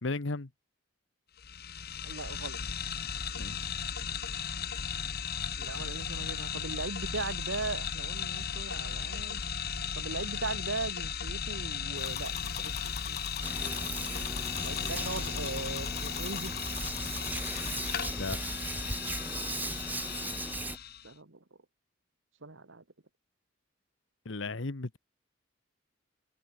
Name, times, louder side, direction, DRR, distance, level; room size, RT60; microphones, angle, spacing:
voice 1, 0.0-0.5 3.3-3.8 18.2-18.4 24.2-25.0, left 3 dB, 80° left, 1.2 m, -35 dB
sound 1, 1.4-21.1, left 7 dB, 55° left, 1.7 m, -36 dB
voice 2, 2.0-2.6 5.6-9.4 9.9-13.2 14.6-16.5 21.0-21.4 22.4-22.8, right 3 dB, 85° right, 1.8 m, -39 dB
sound 2, 12.0-17.9, left 8 dB, 35° left, 0.7 m, -44 dB
Hands, 13.4-20.8, right 2 dB, 10° right, 1.9 m, -38 dB
head